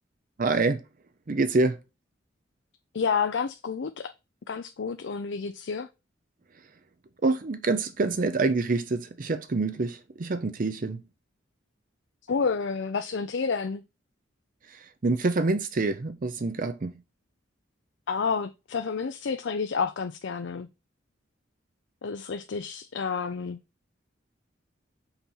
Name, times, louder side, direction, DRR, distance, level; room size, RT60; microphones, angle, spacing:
voice 1, 0.4-0.8 1.3-1.8 7.2-11.0 14.7-16.9, right 3 dB, 45° right, 0.5 m, -26 dB
voice 2, 2.9-4.1 4.5-5.9 12.3-13.8 18.1-20.7 22.0-23.6, left 5 dB, 65° left, 0.5 m, -29 dB
5.8 x 4.3 x 5.5 m
head